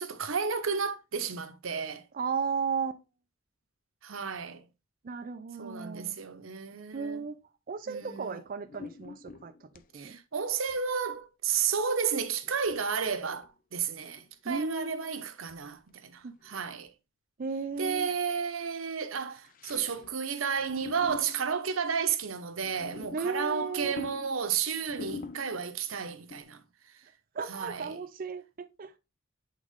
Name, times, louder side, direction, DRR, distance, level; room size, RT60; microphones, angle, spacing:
voice 1, 0.0-2.0 4.0-4.6 5.6-7.3 7.9-8.4 9.9-16.9 17.8-26.6 27.5-28.0, right 6 dB, 90° right, 0.9 m, -32 dB
voice 2, 2.1-3.0 5.0-6.2 6.9-7.4 7.7-9.5 9.9-10.2 14.4-15.1 16.2-16.3 17.4-18.1 23.1-23.9 27.3-29.0, right 5 dB, 45° right, 0.5 m, -34 dB
sound 1, 8.0-8.3 8.6-9.9 10.5-10.8 11.1-11.2 12.4-13.5 14.0-14.3 14.6-14.9 15.5-15.6 15.9-16.0 16.2-16.6 16.9-17.0 17.7-18.4 19.3-20.2 20.5-21.6 22.5-25.8 26.3-26.4, left 4 dB, 45° left, 0.5 m, -46 dB
8.2 x 3.6 x 3.6 m
head